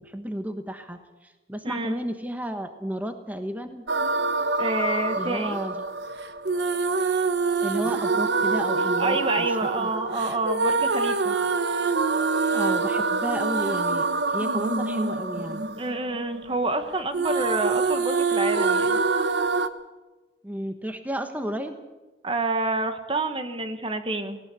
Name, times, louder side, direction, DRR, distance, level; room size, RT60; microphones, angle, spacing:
voice 1, 0.0-3.8 5.1-5.9 7.6-9.9 12.5-14.1 14.3-15.7 20.4-21.7, equal, 10° right, 7 dB, 1.2 m, -32 dB
voice 2, 1.6-2.0 4.6-5.6 9.0-11.4 15.8-19.0 22.2-24.4, right 2 dB, 30° right, 8 dB, 1.3 m, -28 dB
sound 1, 3.9-16.8 17.1-19.7, right 4 dB, 80° right, 1.1 m, -25 dB
18.0 x 18.0 x 8.3 m, 1.1 s
head